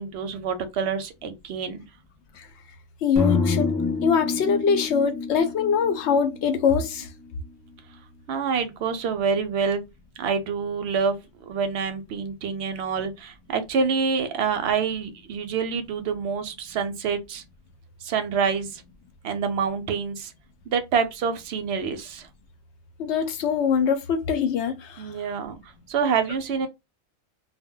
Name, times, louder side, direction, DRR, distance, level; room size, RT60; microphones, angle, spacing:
voice 1, 0.0-1.8 8.3-9.8 10.2-17.4 18.0-18.8 19.2-20.3 20.7-22.3 25.0-25.6 25.9-26.7, right 6 dB, 65° right, 0.7 m, -27 dB
voice 2, 3.0-3.7 4.0-7.1 23.0-25.0, left 6 dB, 70° left, 0.8 m, -23 dB
sound 1, 3.2-7.3, left 4 dB, 30° left, 0.3 m, -28 dB
2.2 x 2.1 x 3.6 m
omnidirectional pair, 1.3 m